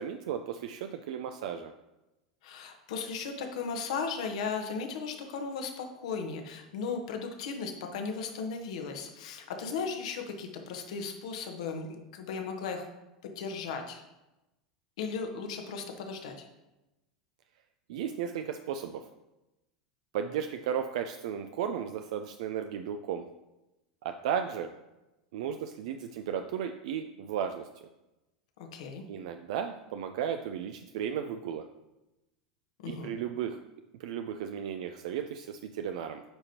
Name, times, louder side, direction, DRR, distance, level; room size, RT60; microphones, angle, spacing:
voice 1, 0.0-1.7 17.9-19.0 20.1-23.2 24.0-24.7 25.3-27.7 29.1-31.7 32.9-33.6 34.0-36.2, right 8 dB, 65° right, 7 dB, 0.4 m, -34 dB
voice 2, 2.4-12.8 13.2-14.0 15.0-16.5 28.7-29.0 32.8-33.1, left 5 dB, 65° left, 4 dB, 1.1 m, -36 dB
8.8 x 5.0 x 2.9 m, 0.98 s
hypercardioid pair, 85°, 4 cm